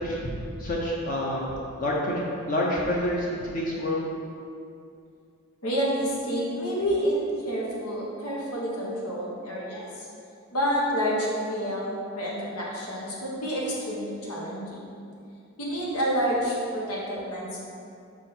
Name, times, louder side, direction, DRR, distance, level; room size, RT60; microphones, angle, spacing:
voice 1, 0.0-1.5 1.8-4.1, left 1 dB, 35° left, -4 dB, 0.7 m, -28 dB
voice 2, 5.6-10.1 10.5-14.8 15.6-17.6, equal, 85° left, -4 dB, 1.6 m, -29 dB
6.1 x 5.2 x 4.4 m, 2.5 s
head